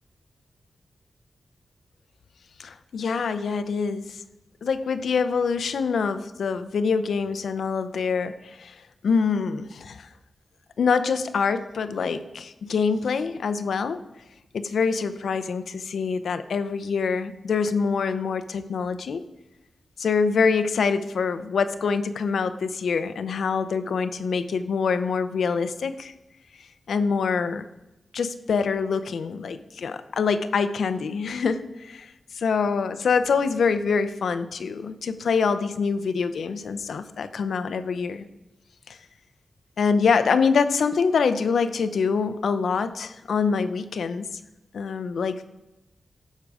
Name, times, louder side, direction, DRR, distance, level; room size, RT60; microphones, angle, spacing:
voice 1, 2.6-4.2 4.6-8.8 9.0-10.1 10.8-14.0 14.5-19.2 20.0-26.1 26.6-27.6 28.1-38.2 38.9-39.0 39.8-44.3 44.7-45.5, left 5 dB, 90° left, 11 dB, 0.7 m, -25 dB
16.5 x 6.6 x 4.9 m, 0.98 s
wide cardioid pair, 175°, 0 cm